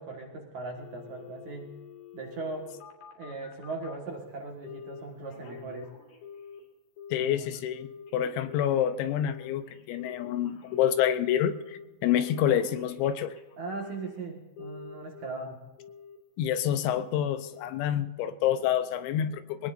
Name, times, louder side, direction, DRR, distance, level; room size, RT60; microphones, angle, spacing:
voice 1, 0.0-1.7 2.1-2.7 3.2-5.9 7.2-7.6 13.6-15.6, right 3 dB, 55° right, 0 dB, 2.3 m, -39 dB
Telephone, 0.8-4.0 4.6-5.0 5.3-6.7 7.0-7.4 7.7-11.1 11.5-11.9 12.1-14.2 14.6-15.4 15.8-16.2 16.5-16.9 17.3-17.7 18.0-18.1, left 7 dB, 60° left, 4.8 m, -47 dB
voice 2, 7.1-13.3 16.4-19.7, left 10 dB, 80° left, 10 dB, 2.9 m, -28 dB
23.5 x 19.0 x 2.6 m, 1.1 s
omnidirectional pair, 5.4 m